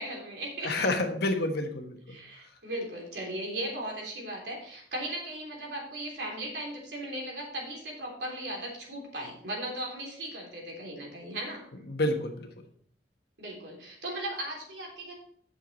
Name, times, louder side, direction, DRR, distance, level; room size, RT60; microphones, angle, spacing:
voice 1, 0.0-0.9 2.1-11.6 13.4-15.1, right 1 dB, 70° right, -2 dB, 3.3 m, -37 dB
voice 2, 0.6-2.2 11.9-12.5, left 2 dB, 65° left, 4 dB, 1.3 m, -29 dB
9.0 x 6.8 x 4.2 m, 0.62 s
head